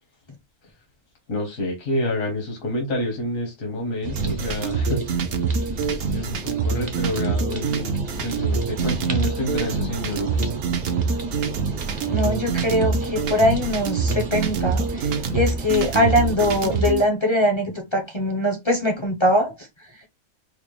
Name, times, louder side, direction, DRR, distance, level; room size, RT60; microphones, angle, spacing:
voice 1, 1.3-5.0 6.1-7.9 8.2-10.5, left 1 dB, 75° left, 1.6 m, -28 dB
sound 1, 4.0-16.9, right 3 dB, 45° right, 0.6 m, -34 dB
sound 2, 4.2-17.0, right 5 dB, 70° right, 1.1 m, -25 dB
voice 2, 12.1-19.7, left 1 dB, 30° left, 0.5 m, -22 dB
4.9 x 2.1 x 3.1 m
omnidirectional pair, 1.4 m